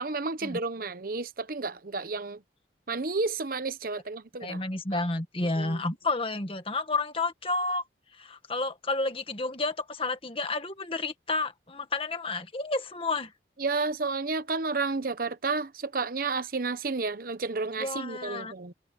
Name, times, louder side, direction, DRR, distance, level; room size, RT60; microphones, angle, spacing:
voice 1, 0.0-2.4 2.9-4.6 4.9-5.0 5.6-5.8 13.6-18.7, right 3 dB, 50° right, 0.9 m, -31 dB
voice 2, 4.4-7.8 8.2-13.3 17.7-18.5, left 2 dB, 30° left, 1.8 m, -31 dB
head